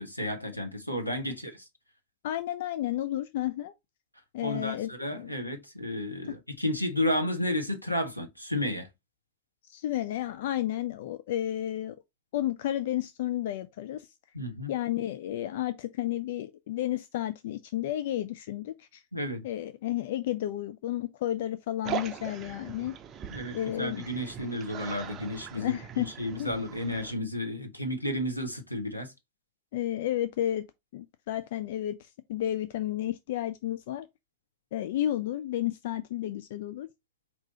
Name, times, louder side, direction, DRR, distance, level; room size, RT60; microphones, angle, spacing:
voice 1, 0.0-1.6 4.4-8.9 14.3-14.7 19.1-19.4 23.3-29.1, left 1 dB, 90° left, 0.9 m, -32 dB
voice 2, 2.2-3.7 4.3-5.3 9.7-11.9 12.3-14.1 14.7-19.0 19.4-23.0 23.5-24.1 25.6-26.1 26.4-26.5 29.7-30.7 30.9-34.1 34.7-36.9, left 13 dB, 55° left, 0.3 m, -32 dB
sound 1, 21.8-27.1, right 8 dB, 30° right, 0.5 m, -40 dB
4.6 x 2.8 x 4.1 m
figure-of-eight pair, 90°, 0 cm